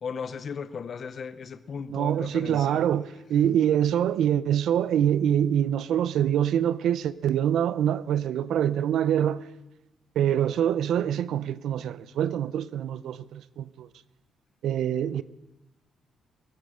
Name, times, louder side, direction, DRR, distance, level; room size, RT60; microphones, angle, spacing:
voice 1, 0.0-2.8, left 6 dB, 50° left, 0.7 m, -36 dB
voice 2, 1.9-9.4 10.2-13.9 14.6-15.2, right 10 dB, 75° right, 0.6 m, -25 dB
22.5 x 9.3 x 6.5 m
cardioid pair, 90°, 0 cm